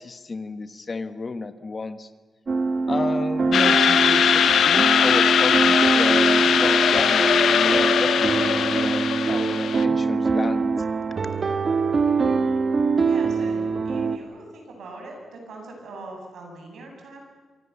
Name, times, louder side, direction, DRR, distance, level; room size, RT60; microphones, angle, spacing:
voice 1, 0.0-2.1 2.9-10.7, left 4 dB, 30° left, 11 dB, 1.1 m, -32 dB
sound 1, 2.5-14.2, right 4 dB, 35° right, 1.3 m, -23 dB
sound 2, 3.5-9.8, left 8 dB, 70° left, 0.8 m, -20 dB
voice 2, 13.0-17.2, right 2 dB, 75° right, 1 dB, 8.0 m, -41 dB
27.0 x 25.5 x 7.1 m, 1.4 s
wide cardioid pair, 150°, 0 cm